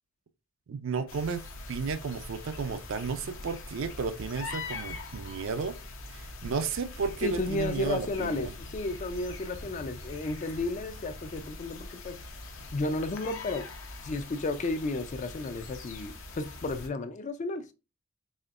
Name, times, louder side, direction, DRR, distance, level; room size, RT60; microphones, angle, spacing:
voice 1, 0.7-1.4 1.7-5.8 6.1-8.5, right 5 dB, 65° right, 0.4 m, -33 dB
sound 1, 1.1-16.9, left 3 dB, 65° left, 0.7 m, -42 dB
voice 2, 7.2-12.2 12.7-13.7 14.0-17.7, left 2 dB, 35° left, 0.4 m, -33 dB
4.2 x 2.9 x 2.4 m
head